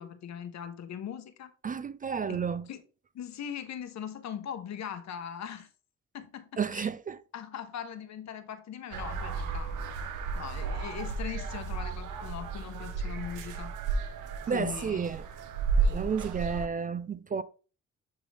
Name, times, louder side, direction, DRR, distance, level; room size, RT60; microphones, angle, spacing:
voice 1, 0.0-1.5 2.3-2.4 2.7-2.8 3.1-5.7 6.1-6.9 7.3-9.9 10.3-13.7 14.5-15.0, left 8 dB, 65° left, 1.0 m, -40 dB
voice 2, 1.6-2.7 6.6-7.2 14.5-15.3 15.7-17.4, right 6 dB, 30° right, 0.4 m, -32 dB
sound 1, 8.9-16.7, right 4 dB, 80° right, 0.9 m, -33 dB
9.7 x 3.7 x 3.4 m
cardioid pair, 90°, 30 cm